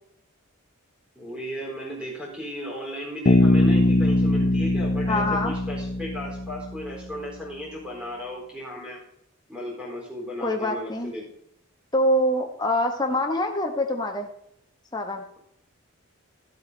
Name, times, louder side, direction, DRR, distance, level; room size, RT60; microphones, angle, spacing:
voice 1, 1.1-9.0 9.5-11.3, equal, 5° right, -4 dB, 4.2 m, -35 dB
Bass guitar, 3.3-6.9, left 2 dB, 40° left, 0.6 m, -21 dB
voice 2, 5.1-5.5 10.4-11.1 11.9-14.3 14.9-15.2, left 1 dB, 20° left, 3 dB, 1.2 m, -25 dB
12.5 x 8.0 x 3.9 m, 0.73 s
head